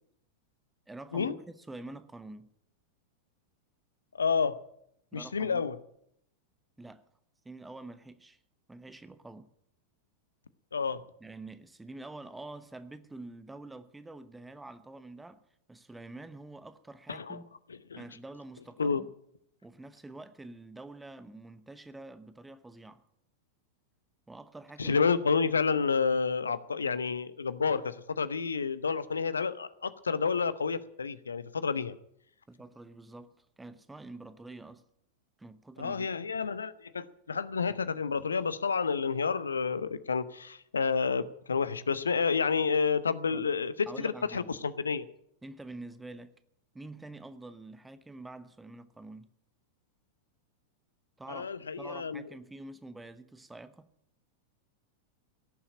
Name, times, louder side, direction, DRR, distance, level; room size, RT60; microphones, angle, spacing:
voice 1, 0.9-2.5 5.1-5.7 6.8-7.0 7.4-8.4 8.7-9.5 11.2-15.4 15.7-17.5 18.0-19.1 19.6-23.0 24.3-25.0 32.5-34.8 35.4-36.2 43.3-43.5 43.9-44.5 45.4-46.4 46.7-49.3 51.2-53.9, right 2 dB, 10° right, 1.0 m, -47 dB
voice 2, 4.1-4.6 5.1-5.8 10.7-11.0 17.1-17.4 17.9-18.0 18.8-19.0 24.8-32.0 35.8-45.1 51.3-52.3, left 5 dB, 75° left, 0.7 m, -30 dB
17.0 x 7.1 x 9.9 m
figure-of-eight pair, 90°, 0 cm